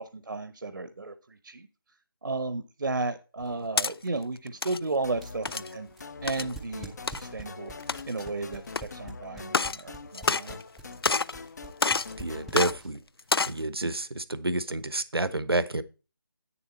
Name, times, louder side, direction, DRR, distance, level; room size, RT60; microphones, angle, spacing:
voice 1, 0.0-1.7 2.2-5.9 6.2-7.7 8.1-10.6, right 3 dB, 65° right, 10 dB, 0.8 m, -34 dB
sound 1, 3.4-3.9 4.5-4.8 5.5-5.7 6.3-6.5 7.1-7.2 7.8-8.2 8.7-8.8 9.4-9.8 10.1-10.8 11.0-11.4 11.8-12.1 12.5-12.7 13.2-13.6, left 4 dB, 80° left, 0.4 m, -27 dB
sound 2, 5.0-12.8, left 4 dB, 45° left, 0.7 m, -44 dB
sound 3, 5.1-13.1, right 1 dB, ahead, 0.4 m, -45 dB
voice 2, 12.2-13.0 13.5-15.8, right 2 dB, 90° right, 14 dB, 0.9 m, -29 dB
9.1 x 7.1 x 4.2 m, 0.33 s
figure-of-eight pair, 155°, 12 cm